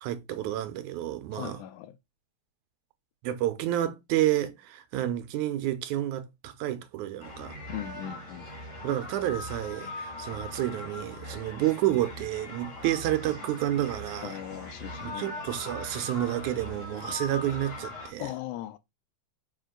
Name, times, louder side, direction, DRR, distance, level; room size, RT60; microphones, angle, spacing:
voice 1, 0.0-1.6 3.2-7.6 8.8-14.4 15.0-18.3, right 13 dB, 80° right, 2.2 m, -30 dB
voice 2, 1.3-2.0 7.7-8.5 14.2-15.4 18.2-18.8, left 12 dB, 80° left, 2.1 m, -38 dB
sound 1, 7.2-18.1, left 2 dB, 45° left, 3.9 m, -40 dB
5.5 x 5.2 x 3.7 m
omnidirectional pair, 3.5 m